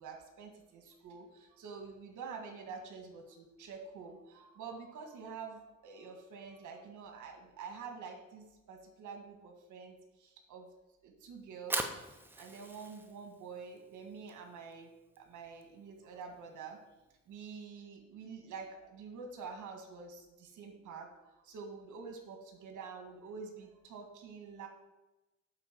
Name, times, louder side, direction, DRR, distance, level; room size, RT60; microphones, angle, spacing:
voice 1, 0.0-10.7 11.0-14.9 15.2-16.8 17.3-21.1 21.4-24.7, right 5 dB, 80° right, 4 dB, 1.7 m, -47 dB
Fire, 11.4-17.6, right 1 dB, 5° right, 0.9 m, -44 dB
9.9 x 4.3 x 5.9 m, 1.0 s
cardioid pair, 90°, 30 cm